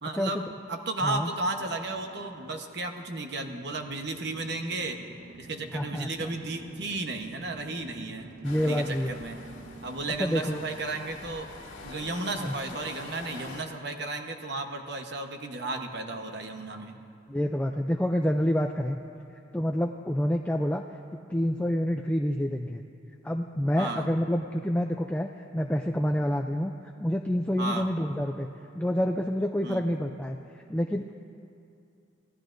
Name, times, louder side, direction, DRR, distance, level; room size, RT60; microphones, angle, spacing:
voice 1, 0.0-5.0 5.4-8.3 8.6-9.4 9.8-11.5 11.8-17.0 23.8-24.1 27.6-27.9 29.6-29.8, right 2 dB, 55° right, 4 dB, 1.1 m, -34 dB
sound 1, 1.0-12.0, right 1 dB, 85° right, 1.2 m, -50 dB
voice 2, 5.7-6.3 8.4-9.2 10.2-10.7 12.4-12.5 17.3-19.0 19.5-20.8 21.3-22.8 23.2-26.7 27.0-28.5 28.7-31.1, equal, 5° left, 3 dB, 0.3 m, -28 dB
sound 2, 8.4-13.6, left 3 dB, 70° left, 2.1 m, -44 dB
26.0 x 16.5 x 2.6 m, 2.6 s
head